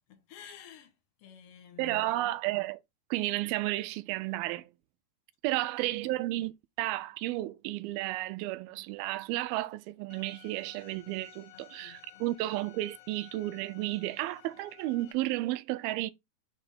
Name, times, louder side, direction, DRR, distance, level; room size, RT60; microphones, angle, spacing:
voice 1, 0.1-2.4 5.5-6.3 11.5-12.3, left 10 dB, 60° left, 1.6 m, -53 dB
voice 2, 1.8-2.8 3.1-4.7 5.4-6.5 6.8-16.1, right 17 dB, 85° right, 2.5 m, -32 dB
Bowed string instrument, 10.1-15.1, left 15 dB, 85° left, 2.8 m, -55 dB
6.4 x 3.5 x 4.2 m
omnidirectional pair, 4.2 m